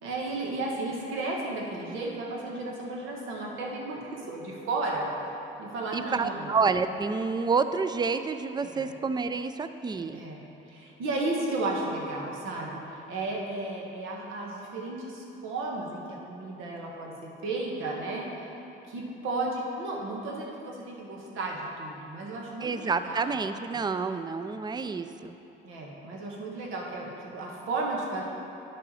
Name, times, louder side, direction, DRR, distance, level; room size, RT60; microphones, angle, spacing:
voice 1, 0.0-5.1 5.6-6.5 8.7-8.9 10.1-10.4 10.7-18.5 18.9-23.2 25.6-28.2, right 2 dB, 90° right, -2 dB, 1.3 m, -34 dB
voice 2, 5.9-10.2 22.6-25.3, right 4 dB, 20° right, 10 dB, 0.4 m, -29 dB
10.5 x 5.5 x 4.2 m, 3.0 s
cardioid pair, 90°, 20 cm